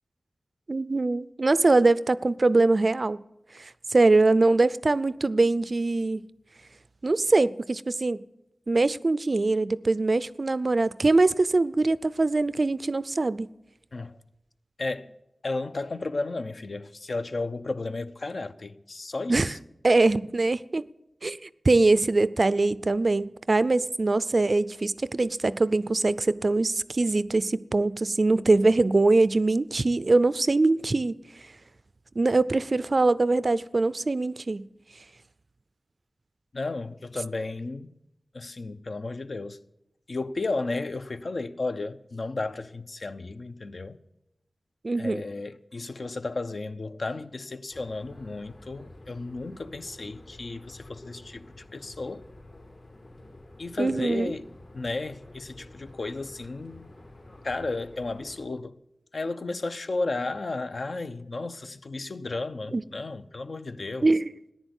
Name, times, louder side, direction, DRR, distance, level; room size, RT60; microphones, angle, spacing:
voice 1, 0.7-3.2 3.6-6.2 7.0-8.2 8.7-13.5 19.3-19.5 19.8-20.8 21.2-21.4 21.6-31.2 32.2-34.6 44.8-45.2 53.8-54.3 62.7-62.8 64.0-64.2, right 3 dB, 45° right, 0.4 m, -23 dB
voice 2, 14.8-15.1 15.4-19.6 36.5-37.9 38.3-39.6 40.1-44.0 45.0-52.2 53.6-54.5 54.7-56.9 57.4-58.8 59.1-64.1, left 3 dB, 60° left, 0.7 m, -33 dB
sound 1, 47.7-58.4, left 1 dB, 75° left, 4.5 m, -49 dB
14.5 x 10.5 x 8.2 m
wide cardioid pair, 85°, 0 cm